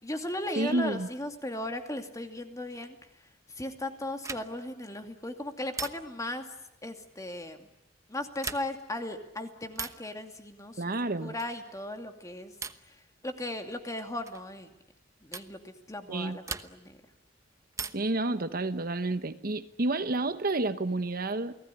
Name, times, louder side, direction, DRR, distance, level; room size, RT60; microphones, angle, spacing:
voice 1, 0.0-3.0 3.6-6.5 6.8-7.7 8.1-10.8 11.2-12.5 12.8-13.0 13.2-14.7 15.2-17.0, left 1 dB, 20° left, 2.5 m, -37 dB
voice 2, 0.6-1.1 10.8-11.3 16.1-16.4 17.9-21.6, right 2 dB, 50° right, 1.1 m, -30 dB
sound 1, 4.2-4.7 5.7-6.3 8.3-8.9 9.7-10.1 11.4-11.7 12.6-13.0 14.3-14.5 15.3-15.6 16.5-17.0 17.7-18.2 19.7-20.4, right 4 dB, 15° right, 1.0 m, -40 dB
29.5 x 19.0 x 9.9 m
head